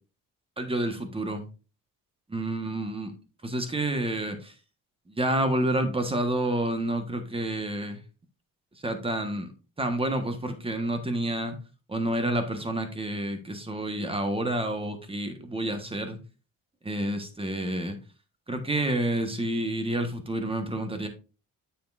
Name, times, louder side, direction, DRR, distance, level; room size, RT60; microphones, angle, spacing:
voice 1, 0.6-1.4 2.3-3.1 3.4-4.5 5.1-8.0 8.8-9.5 9.8-11.5 11.9-16.2 16.8-18.0 18.5-21.1, right 1 dB, 15° right, 7 dB, 1.4 m, -29 dB
9.2 x 7.1 x 2.6 m, 0.33 s
cardioid pair, 115°, 33 cm